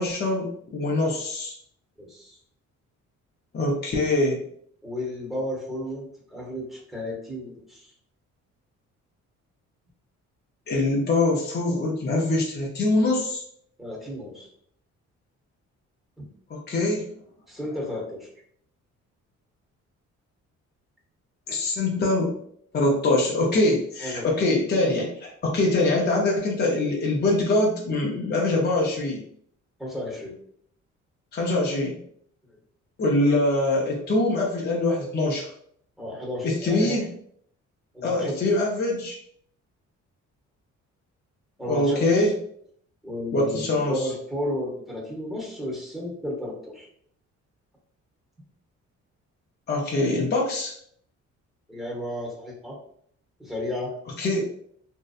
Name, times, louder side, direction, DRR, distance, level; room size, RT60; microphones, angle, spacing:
voice 1, 0.0-1.5 3.5-4.4 10.7-13.4 16.5-17.1 21.5-22.4 22.7-29.2 31.3-32.0 33.0-35.5 36.4-37.1 38.0-39.2 41.7-42.3 43.3-44.1 49.7-50.7 54.2-54.5, left 2 dB, 35° left, -2 dB, 0.6 m, -23 dB
voice 2, 2.0-2.4 4.8-7.9 13.8-14.5 16.2-16.3 17.5-18.3 24.0-24.5 29.8-30.3 32.5-32.6 36.0-37.0 37.9-38.4 41.6-42.3 43.0-46.9 51.7-52.8 53.4-53.9, left 1 dB, ahead, -3 dB, 0.9 m, -33 dB
2.6 x 2.1 x 2.4 m, 0.65 s
cardioid pair, 90°, 30 cm